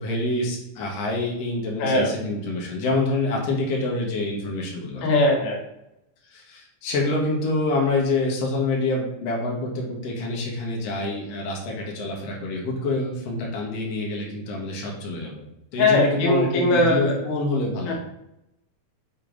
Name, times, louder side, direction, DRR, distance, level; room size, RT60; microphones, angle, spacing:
voice 1, 0.0-5.1 6.3-15.4 15.7-17.9, left 2 dB, 55° left, -2 dB, 2.2 m, -26 dB
voice 2, 1.8-2.1 5.0-5.6 15.8-17.2 17.9-18.0, left 2 dB, 80° left, 0 dB, 2.6 m, -20 dB
6.9 x 3.8 x 3.8 m, 0.86 s
omnidirectional pair, 3.7 m